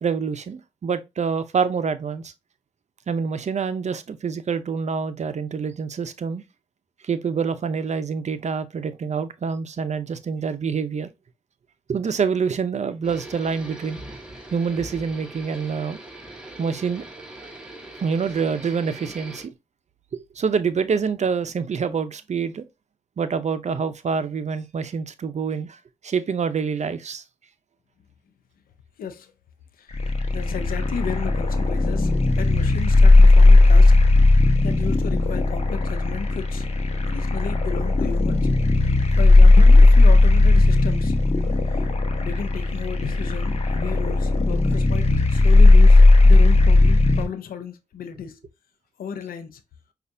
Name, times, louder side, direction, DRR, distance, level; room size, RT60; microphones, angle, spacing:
voice 1, 0.0-2.3 3.1-6.4 7.0-11.1 11.9-14.0 14.5-16.0 16.6-17.0 18.0-19.5 20.1-22.6 23.2-25.8 26.0-27.2, right 6 dB, 50° right, 0.6 m, -26 dB
sound 1, 13.0-19.5, right 1 dB, 5° right, 1.4 m, -41 dB
voice 2, 29.0-29.3 29.8-34.0 34.6-36.7 37.0-38.5 39.2-41.1 41.7-41.9 42.2-48.4 49.0-49.6, left 7 dB, 80° left, 0.6 m, -34 dB
sound 2, 29.9-47.3, left 2 dB, 45° left, 1.0 m, -16 dB
5.3 x 2.4 x 2.6 m
supercardioid pair, 45°, 15 cm